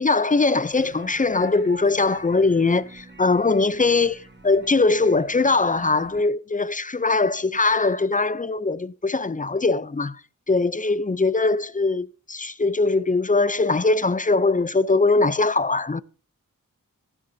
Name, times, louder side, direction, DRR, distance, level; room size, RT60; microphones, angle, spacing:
voice 1, 0.0-10.2 10.5-16.0, left 3 dB, 25° left, 0.5 m, -21 dB
sound 1, 0.7-6.2, right 1 dB, 30° right, 1.6 m, -44 dB
15.5 x 10.5 x 2.7 m
wide cardioid pair, 50°, 34 cm